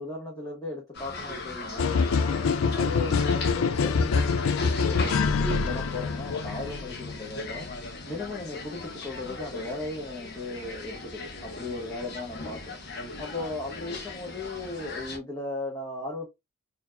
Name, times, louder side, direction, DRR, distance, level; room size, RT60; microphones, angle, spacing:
voice 1, 0.0-12.8 13.2-16.3, left 2 dB, 20° left, 1.2 m, -37 dB
sound 1, 0.9-15.2, left 2 dB, 50° left, 0.9 m, -38 dB
sound 2, 1.8-7.7, left 5 dB, 85° left, 0.4 m, -26 dB
4.3 x 2.7 x 2.2 m
head